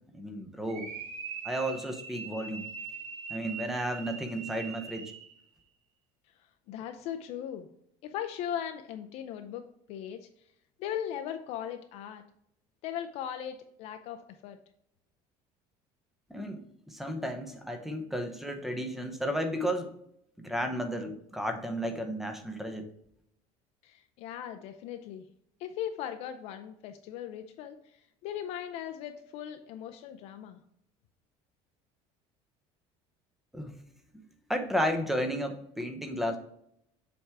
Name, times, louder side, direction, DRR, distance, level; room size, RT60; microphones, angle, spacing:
voice 1, 0.1-0.9 1.4-2.7 3.3-5.1 16.3-19.9 20.4-22.9 33.5-33.7 34.5-36.4, equal, ahead, 5 dB, 0.7 m, -33 dB
sound 1, 0.7-5.4, right 6 dB, 75° right, 1.5 m, -42 dB
voice 2, 6.7-7.7 8.0-10.3 10.8-12.2 12.8-14.6 23.8-25.2 25.6-30.6, left 10 dB, 60° left, 7 dB, 0.5 m, -38 dB
7.1 x 3.5 x 4.7 m, 0.73 s
cardioid pair, 170°, 12 cm